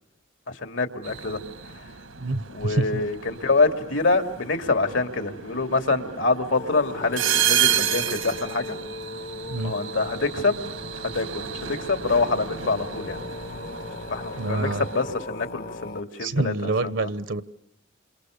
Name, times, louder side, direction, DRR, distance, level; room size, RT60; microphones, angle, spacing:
voice 1, 0.5-1.4 1.7-1.9 2.5-8.8 9.6-10.6 11.0-13.2 14.1-17.1, left 3 dB, 75° left, 2.7 m, -26 dB
sound 1, 1.0-15.0, right 9 dB, 85° right, 1.8 m, -31 dB
voice 2, 2.2-3.0 9.5-9.7 14.4-14.9 16.2-17.4, right 2 dB, 70° right, 1.0 m, -26 dB
sound 2, 6.5-16.0, left 2 dB, 50° left, 1.0 m, -38 dB
29.0 x 27.5 x 6.6 m
head